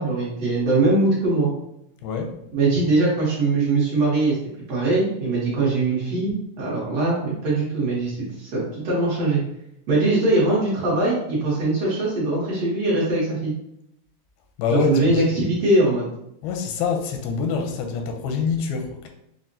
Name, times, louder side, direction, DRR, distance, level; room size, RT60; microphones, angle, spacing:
voice 1, 0.0-1.5 2.5-4.4 4.7-9.4 9.9-13.5 14.7-16.1, right 2 dB, 70° right, -7 dB, 1.6 m, -21 dB
voice 2, 2.0-2.3 14.6-15.3 16.4-19.1, left 5 dB, 85° left, 4 dB, 2.4 m, -25 dB
5.9 x 2.1 x 2.6 m, 0.78 s
omnidirectional pair, 4.1 m